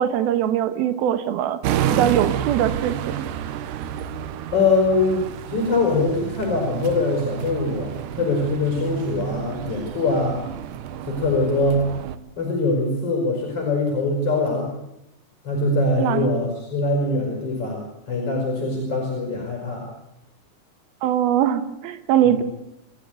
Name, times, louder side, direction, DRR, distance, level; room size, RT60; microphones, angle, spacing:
voice 1, 0.0-1.6 1.9-3.2 16.0-16.3 21.0-22.4, right 10 dB, 85° right, 10 dB, 3.1 m, -21 dB
sound 1, 1.6-12.2, right 10 dB, 70° right, 2.3 m, -29 dB
voice 2, 4.5-10.4 11.0-11.8 12.4-14.7 15.4-19.9 22.2-22.4, left 3 dB, 40° left, 2 dB, 6.1 m, -23 dB
28.5 x 12.5 x 9.4 m, 0.84 s
omnidirectional pair, 4.2 m